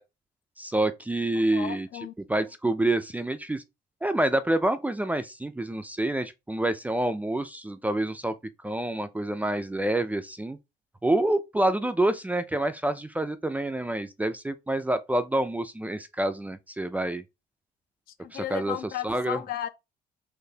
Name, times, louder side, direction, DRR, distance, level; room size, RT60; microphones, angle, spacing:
voice 1, 0.6-1.9 2.3-3.6 4.0-8.3 8.6-10.6 11.0-17.2 18.3-18.8 19.0-19.4, right 1 dB, 10° right, 0.3 m, -27 dB
voice 2, 1.3-2.1 18.2-19.7, left 11 dB, 65° left, 0.5 m, -35 dB
3.9 x 3.0 x 2.7 m
cardioid pair, 110°, 17 cm